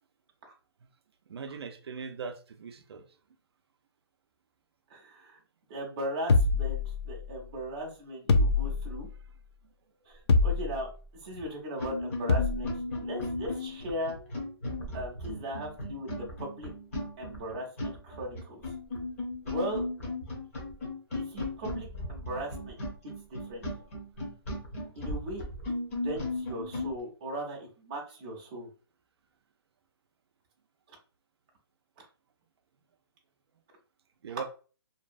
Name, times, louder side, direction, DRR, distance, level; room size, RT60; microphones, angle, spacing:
voice 1, 1.3-3.0 10.1-10.2 34.2-34.4, right 6 dB, 75° right, 0.4 m, -40 dB
voice 2, 4.9-5.4 5.7-9.1 10.1-10.9 11.2-12.7 13.0-14.2 14.9-16.7 17.2-18.6 19.4-19.8 21.1-22.8 23.3-23.6 24.9-25.4 26.0-28.7 30.9-31.0 32.0-32.1 34.3-34.4, equal, 20° right, 0.5 m, -38 dB
sound 1, 6.3-7.4 8.3-9.2 10.3-11.0 12.3-12.8, left 3 dB, 90° left, 0.4 m, -25 dB
sound 2, 11.3-11.4 11.8-26.9, left 2 dB, 35° left, 0.8 m, -36 dB
2.6 x 2.1 x 2.5 m
hypercardioid pair, 170°, 13 cm